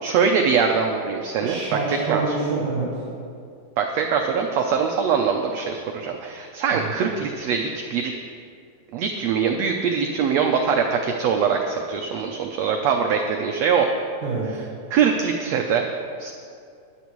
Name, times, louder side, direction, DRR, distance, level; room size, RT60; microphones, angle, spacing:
voice 1, 0.0-1.6 1.9-2.3 3.8-8.1 8.9-13.9 14.9-15.9 16.2-16.3, right 6 dB, 85° right, 2 dB, 1.5 m, -22 dB
voice 2, 1.4-3.0 6.7-6.9 14.2-14.6, right 3 dB, 60° right, -6 dB, 3.1 m, -27 dB
16.5 x 10.5 x 3.1 m, 2.4 s
omnidirectional pair, 3.8 m